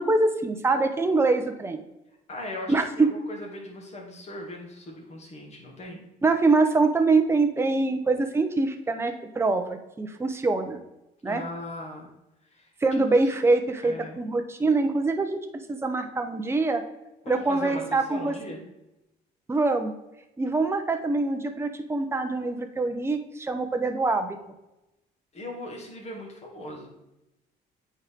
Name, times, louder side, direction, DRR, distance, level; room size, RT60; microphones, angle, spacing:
voice 1, 0.0-1.8 2.7-3.1 6.2-10.8 11.2-11.4 12.8-16.8 17.3-18.3 19.5-19.9 20.4-24.4, right 3 dB, 15° right, 5 dB, 0.9 m, -24 dB
voice 2, 2.3-6.0 11.2-12.1 12.5-13.0 13.8-14.2 17.2-18.6 25.3-26.9, left 1 dB, 40° left, -1 dB, 2.5 m, -39 dB
8.7 x 4.4 x 3.6 m, 0.93 s
cardioid pair, 110°, 17 cm